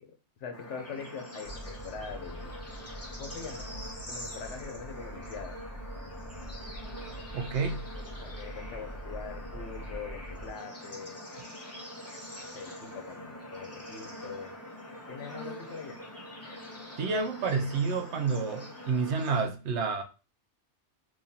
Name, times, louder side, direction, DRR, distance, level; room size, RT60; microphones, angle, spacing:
voice 1, 0.0-2.6 3.2-3.7 4.1-5.6 8.0-11.2 12.5-14.6 15.1-16.0, left 6 dB, 85° left, 1.1 m, -43 dB
Bird / Insect / Frog, 0.5-19.4, left 1 dB, 15° left, 0.9 m, -44 dB
sound 1, 1.4-10.5, right 1 dB, 25° right, 1.1 m, -44 dB
voice 2, 7.3-7.8 17.0-20.0, right 4 dB, 75° right, 0.9 m, -29 dB
3.7 x 3.0 x 2.8 m
omnidirectional pair, 1.2 m